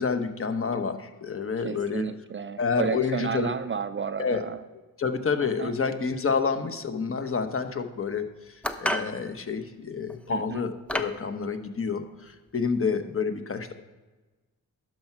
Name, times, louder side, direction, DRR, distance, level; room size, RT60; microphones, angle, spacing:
voice 1, 0.0-2.0 2.6-3.5 4.2-4.4 5.0-8.2 8.8-13.7, left 5 dB, 35° left, 8 dB, 1.1 m, -28 dB
voice 2, 1.6-4.6 5.4-5.7 10.3-10.6, right 6 dB, 35° right, 12 dB, 0.4 m, -32 dB
sound 1, 8.6-9.1 10.1-10.3 10.9-11.2, equal, 5° left, 0.8 m, -29 dB
12.0 x 4.5 x 6.0 m, 1.2 s
cardioid pair, 70°, 37 cm